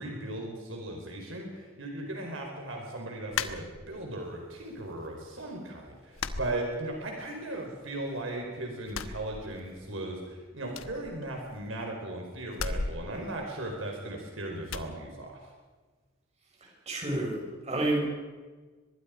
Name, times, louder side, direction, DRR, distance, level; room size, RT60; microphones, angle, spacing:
voice 1, 0.0-15.4, right 1 dB, 70° right, 1 dB, 4.5 m, -37 dB
sound 1, 3.3-4.2 4.6-5.3 5.6-5.7 6.1-7.3 7.6-8.4 8.8-10.0 10.2-10.3 10.7-11.8 12.5-14.2 14.7-14.9, left 4 dB, 90° left, 1.2 m, -37 dB
voice 2, 16.9-18.1, right 1 dB, 35° right, -1 dB, 6.0 m, -29 dB
24.5 x 21.0 x 5.1 m, 1.4 s
head